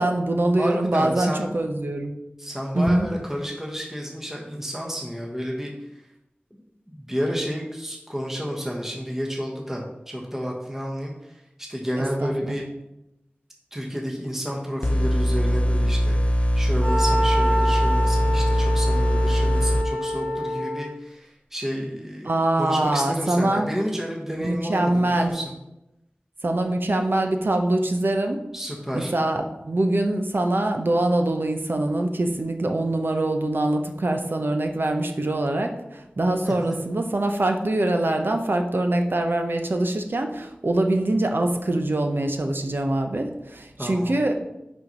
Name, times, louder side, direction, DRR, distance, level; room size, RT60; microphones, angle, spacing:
voice 1, 0.0-2.1 2.7-3.1 12.2-12.6 22.2-23.7 24.4-25.3 26.4-28.4 28.9-44.3, right 1 dB, 70° right, 4 dB, 0.8 m, -23 dB
voice 2, 0.6-1.4 2.4-6.0 6.5-6.6 6.9-12.6 13.7-25.5 28.5-29.1 36.4-36.7 43.8-44.1, equal, 10° right, -2 dB, 1.3 m, -31 dB
sound 1, 14.8-19.8, equal, 35° left, 0.5 m, -21 dB
Wind instrument woodwind instrument, 16.8-20.9, equal, 30° right, 1.7 m, -26 dB
5.7 x 4.5 x 5.4 m, 0.91 s
wide cardioid pair, 40°, 4 cm